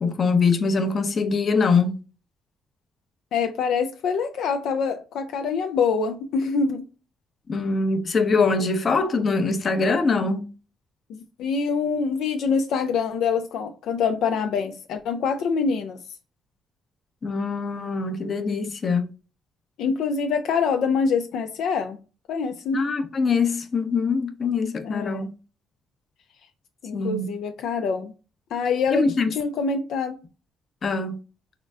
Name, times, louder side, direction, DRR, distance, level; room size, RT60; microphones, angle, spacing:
voice 1, 0.0-2.0 7.5-10.4 17.2-19.1 22.7-25.3 26.9-27.3 28.9-29.3 30.8-31.2, left 4 dB, 45° left, 0.7 m, -23 dB
voice 2, 3.3-6.8 11.1-16.0 19.8-22.0 22.3-22.8 24.8-25.3 26.8-28.1 28.5-30.2, left 5 dB, 80° left, 0.4 m, -25 dB
3.8 x 2.1 x 3.4 m
cardioid pair, 90°, 0 cm